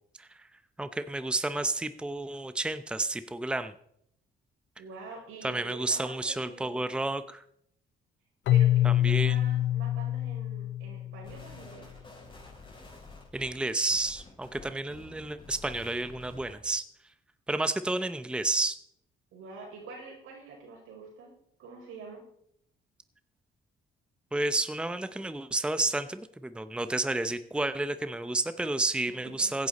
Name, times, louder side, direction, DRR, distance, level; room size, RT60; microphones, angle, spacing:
voice 1, 0.8-3.7 5.4-7.4 8.8-9.4 13.3-16.8 17.5-18.8 24.3-29.7, right 2 dB, 5° right, 11 dB, 0.7 m, -31 dB
voice 2, 4.8-7.0 8.5-12.0 19.3-21.3 21.6-22.2 29.1-29.5, right 4 dB, 85° right, 0 dB, 5.4 m, -46 dB
Keyboard (musical), 8.5-11.4, left 13 dB, 70° left, 0.4 m, -25 dB
sound 1, 11.2-16.7, left 3 dB, 25° left, 5.6 m, -50 dB
16.0 x 10.0 x 4.2 m, 0.71 s
cardioid pair, 90°, 20 cm